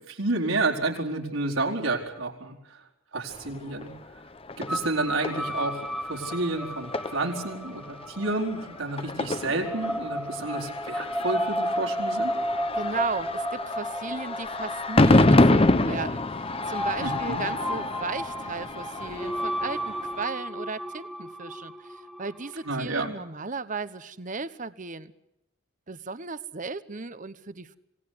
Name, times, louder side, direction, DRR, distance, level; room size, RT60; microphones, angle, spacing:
voice 1, 0.1-2.8 3.1-3.9 4.6-12.3 17.0-17.4 22.6-23.1, right 2 dB, 75° right, 0 dB, 4.7 m, -30 dB
sound 1, 3.3-20.3, left 2 dB, 25° left, 0.9 m, -27 dB
sound 2, 4.7-22.8, equal, ahead, 1.7 m, -34 dB
voice 2, 12.8-25.1 25.9-27.8, right 4 dB, 40° right, 15 dB, 1.0 m, -35 dB
26.5 x 18.5 x 9.5 m, 0.92 s
head